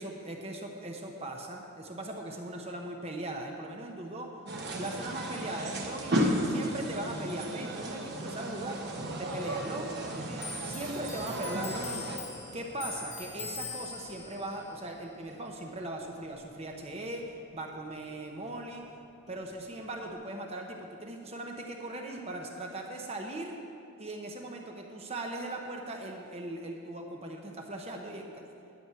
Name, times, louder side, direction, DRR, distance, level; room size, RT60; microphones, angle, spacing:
voice 1, 0.0-4.3 4.8-8.8 9.2-12.1 12.5-18.8 19.3-23.6 24.0-28.4, right 1 dB, 30° right, 1 dB, 0.8 m, -39 dB
sound 1, 4.5-12.2, equal, 50° right, 1.2 m, -34 dB
Clock, 10.4-17.4 17.7-19.0 19.3-20.1, left 4 dB, 30° left, 1.1 m, -44 dB
11.0 x 6.2 x 8.3 m, 2.7 s
head